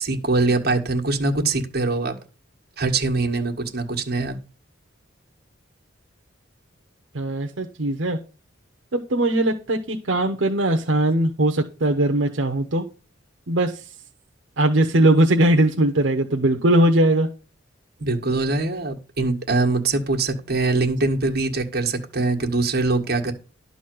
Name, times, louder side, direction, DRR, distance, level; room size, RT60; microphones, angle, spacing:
voice 1, 0.0-2.1 2.8-4.4 18.0-23.3, right 3 dB, 55° right, 2 dB, 1.7 m, -23 dB
voice 2, 7.1-8.2 8.9-12.8 13.5-13.8 14.6-17.3, right 1 dB, 75° right, 3 dB, 1.0 m, -20 dB
11.5 x 4.1 x 7.7 m, 0.34 s
head